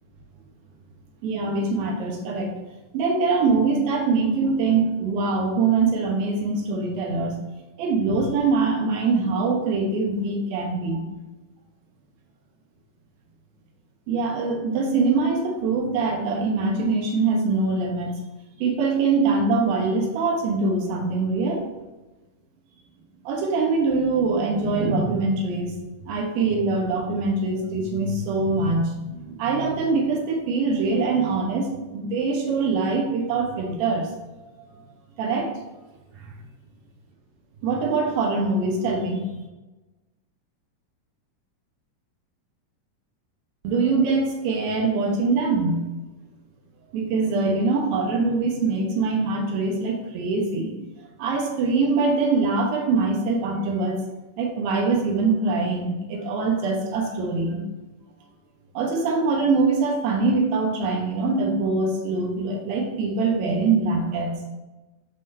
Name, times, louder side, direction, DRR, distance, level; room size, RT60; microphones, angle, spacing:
voice 1, 1.2-2.5 2.9-7.4 7.8-11.1 14.1-18.1 18.6-21.6 23.3-25.8 26.1-34.1 34.6-34.9 35.2-35.5 36.2-36.3 37.6-39.2 43.6-45.8 46.9-50.7 51.2-54.0 54.4-57.6 58.7-64.4, right 3 dB, 85° right, 0 dB, 2.9 m, -23 dB
11.5 x 3.9 x 2.7 m, 1.1 s
omnidirectional pair, 4.0 m